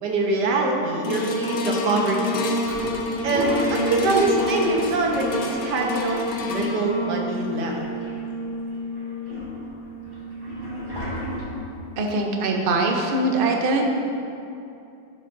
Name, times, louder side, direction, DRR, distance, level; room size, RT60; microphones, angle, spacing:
voice 1, 0.0-2.5 3.2-7.7, right 2 dB, 75° right, 0 dB, 1.6 m, -24 dB
sound 1, 1.0-11.4 12.0-12.1, left 1 dB, 65° left, 1.1 m, -29 dB
Toilet flush, 2.6-7.0 7.3-7.4 7.6-8.4 8.9-11.8, right 1 dB, 15° right, 1.2 m, -33 dB
voice 2, 12.0-13.9, right 2 dB, 55° right, 2 dB, 0.6 m, -22 dB
11.5 x 6.3 x 2.6 m, 2.7 s
omnidirectional pair, 1.9 m